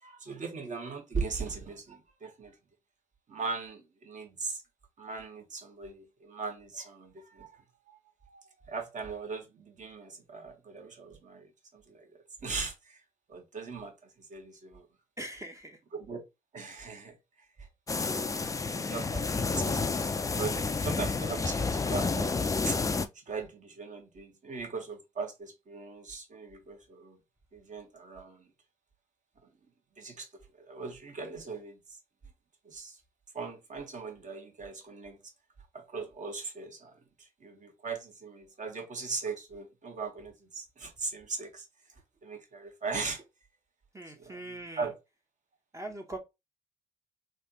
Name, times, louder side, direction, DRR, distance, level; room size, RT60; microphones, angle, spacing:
voice 1, 0.0-2.6 3.3-4.6 5.0-8.0 8.3-13.0 13.3-14.9 15.9-16.2 16.5-17.7 18.0-18.5 18.7-22.4 22.6-22.8 23.1-27.2 27.5-28.5 29.4-29.5 30.0-32.0 32.6-33.0 33.3-35.2 35.7-41.7 42.2-43.3 44.2-44.9, right 4 dB, 45° right, 1.1 m, -39 dB
voice 2, 15.2-15.8 43.9-44.9 45.7-46.2, right 1 dB, 15° right, 0.7 m, -41 dB
sound 1, 17.9-23.1, left 4 dB, 20° left, 0.4 m, -30 dB
3.3 x 2.5 x 2.7 m
hypercardioid pair, 45°, 18 cm